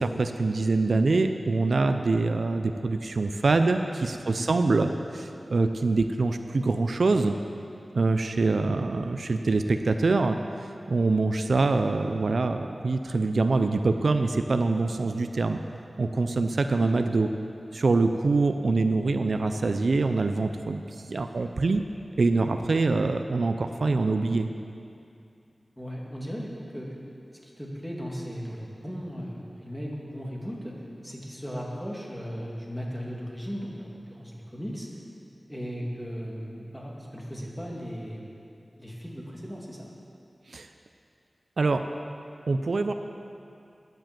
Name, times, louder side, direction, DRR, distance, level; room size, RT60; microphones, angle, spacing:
voice 1, 0.0-7.3 7.9-10.4 10.9-15.6 16.0-17.3 17.7-20.8 21.1-21.8 22.2-24.5 40.5-40.7 41.6-41.8 42.5-42.9, right 3 dB, 75° right, 7 dB, 0.5 m, -24 dB
voice 2, 25.8-26.9 27.4-30.7 31.0-34.9 35.5-38.3 38.8-39.9, equal, 5° left, -3 dB, 2.2 m, -37 dB
11.5 x 7.8 x 7.4 m, 2.6 s
wide cardioid pair, 75°, 0 cm